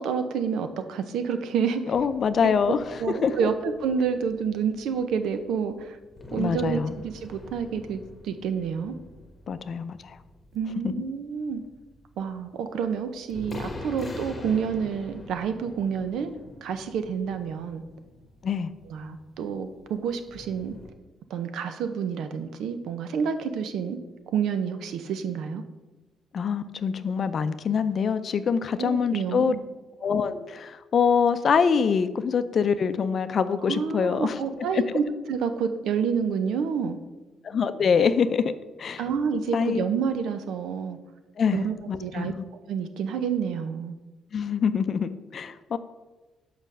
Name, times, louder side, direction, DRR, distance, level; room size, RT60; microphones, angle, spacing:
voice 1, 0.0-1.8 2.7-2.8 3.0-6.0 6.3-8.9 10.5-11.6 12.2-16.3 16.6-17.8 18.9-20.8 21.3-24.0 24.3-25.6 28.8-29.6 33.7-37.0 39.0-41.0 41.5-41.7 42.0-42.3 42.7-43.9, right 6 dB, 80° right, 9 dB, 0.7 m, -28 dB
voice 2, 1.9-3.5 6.3-6.9 9.5-10.2 10.8-10.9 18.4-18.7 26.3-29.5 30.0-34.4 34.7-34.8 37.4-38.5 38.8-39.0 39.5-39.8 41.4-42.3 44.3-45.8, left 6 dB, 50° left, 12 dB, 0.5 m, -25 dB
sound 1, 1.9-20.9, left 2 dB, 25° left, 1.1 m, -45 dB
5.6 x 5.1 x 6.2 m, 1.1 s
cardioid pair, 90°, 0 cm